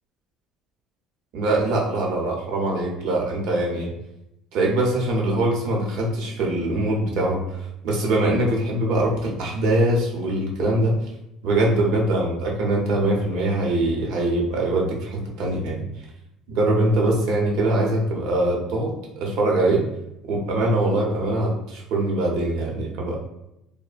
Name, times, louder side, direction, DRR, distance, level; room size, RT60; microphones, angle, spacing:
voice 1, 1.3-3.9 4.5-7.4 7.8-10.9 11.4-15.8 16.5-19.8 20.3-23.2, right 1 dB, 65° right, -1 dB, 0.7 m, -22 dB
2.9 x 2.1 x 2.4 m, 0.84 s
cardioid pair, 170°, 0 cm